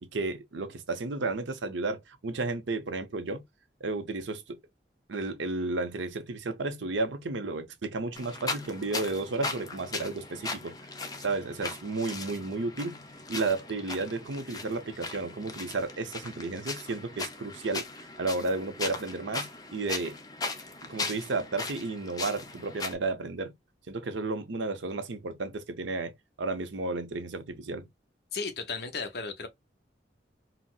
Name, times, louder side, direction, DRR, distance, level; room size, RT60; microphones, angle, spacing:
voice 1, 0.1-3.4 3.8-4.6 5.1-10.7 11.2-13.0 13.3-17.9 18.2-20.2 20.8-23.5 23.9-27.8, right 3 dB, 85° right, 0.7 m, -33 dB
sound 1, 8.1-22.9, left 3 dB, 20° left, 0.4 m, -38 dB
voice 2, 28.3-29.5, left 4 dB, 60° left, 0.7 m, -34 dB
4.0 x 2.1 x 2.3 m
head